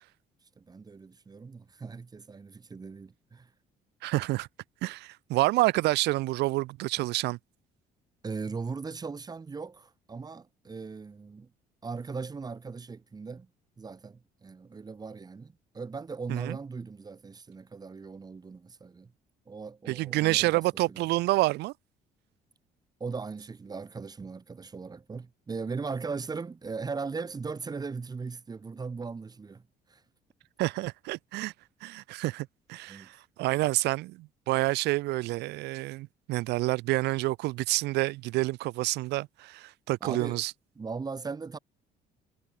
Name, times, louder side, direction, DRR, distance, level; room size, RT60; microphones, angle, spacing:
voice 1, 0.6-3.5 8.2-11.5 11.8-13.5 13.8-19.1 19.5-20.6 20.9-21.1 23.0-29.6 29.9-30.0 32.9-33.1 40.0-40.4 40.8-41.6, right 4 dB, 25° right, 1.4 m, -38 dB
voice 2, 4.0-4.5 4.8-7.4 16.3-16.6 19.9-21.7 30.6-31.5 31.8-40.5, right 19 dB, 80° right, 0.7 m, -28 dB
cardioid pair, 110°, 17 cm